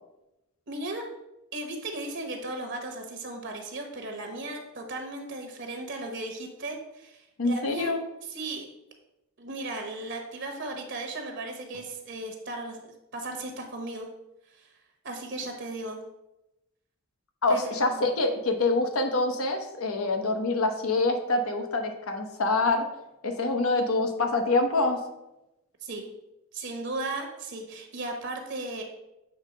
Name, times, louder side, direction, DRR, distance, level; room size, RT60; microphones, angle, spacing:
voice 1, 0.7-1.0 1.5-8.0 8.3-8.6 9.4-14.1 14.5-14.7 15.0-16.0 17.5-18.0 25.8-26.1 26.5-28.8, right 2 dB, 50° right, 4 dB, 0.8 m, -36 dB
voice 2, 7.4-8.0 17.4-22.9 23.2-25.0, left 2 dB, 70° left, 5 dB, 0.9 m, -26 dB
7.1 x 3.3 x 5.0 m, 0.94 s
head